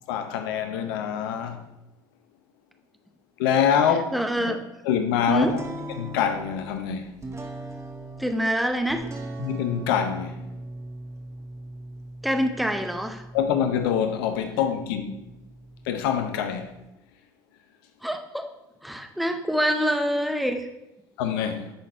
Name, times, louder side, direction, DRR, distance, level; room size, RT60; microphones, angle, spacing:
voice 1, 0.0-1.6 3.4-4.6 4.8-5.6 6.0-7.1 9.4-10.4 13.3-15.2 15.8-16.7 21.2-21.7, left 8 dB, 80° left, 0.7 m, -25 dB
voice 2, 4.1-4.6 5.3-5.5 8.2-9.0 12.2-13.2 18.0-18.5 18.8-20.7, equal, ahead, 0.9 m, -25 dB
sound 1, 5.4-16.9, right 1 dB, 25° right, 1.4 m, -40 dB
10.5 x 4.1 x 4.4 m
hypercardioid pair, 65°, 12 cm